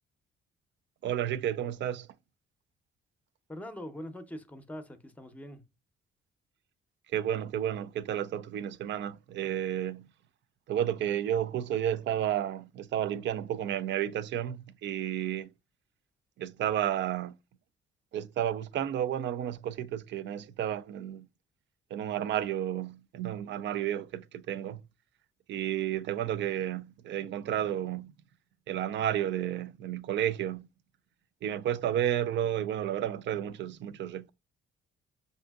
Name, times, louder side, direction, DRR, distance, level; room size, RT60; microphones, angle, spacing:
voice 1, 1.0-2.1 7.1-10.1 10.7-15.5 16.4-17.3 18.1-21.3 21.9-24.8 25.5-28.1 28.7-30.7 31.4-34.3, right 10 dB, 65° right, 0.4 m, -32 dB
voice 2, 3.5-5.6, equal, 5° left, 0.7 m, -42 dB
5.5 x 2.7 x 2.3 m
cardioid pair, 90°, 20 cm